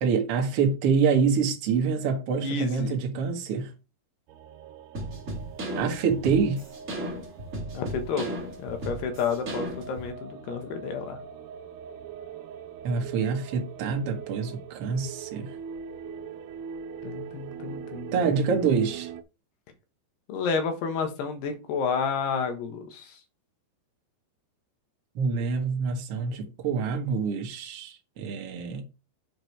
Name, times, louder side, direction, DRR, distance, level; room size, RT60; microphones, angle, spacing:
voice 1, 0.0-3.7 5.8-6.6 12.8-15.5 18.1-19.1 25.1-28.8, right 5 dB, 65° right, 1.4 m, -26 dB
voice 2, 2.4-3.0 7.8-8.3 8.6-11.2 17.0-18.4 20.3-23.2, left 5 dB, 75° left, 3.4 m, -30 dB
sound 1, 4.3-19.2, right 7 dB, 80° right, 2.6 m, -42 dB
sound 2, 4.9-10.1, right 1 dB, 30° right, 1.6 m, -35 dB
7.5 x 5.0 x 4.8 m
omnidirectional pair, 4.9 m